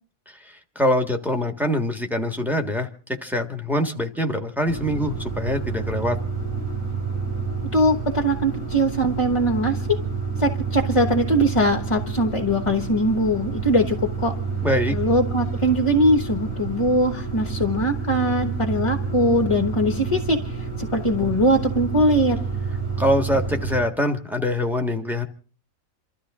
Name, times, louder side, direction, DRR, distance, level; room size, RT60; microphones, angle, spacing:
voice 1, 0.4-6.2 14.6-15.0 23.0-25.3, equal, ahead, 5 dB, 1.5 m, -24 dB
sound 1, 4.6-23.8, right 5 dB, 75° right, 4.5 m, -29 dB
voice 2, 7.7-9.9 10.4-14.3 14.9-22.4, equal, 25° left, 6 dB, 1.1 m, -21 dB
28.0 x 13.0 x 3.7 m, 0.40 s
omnidirectional pair, 1.5 m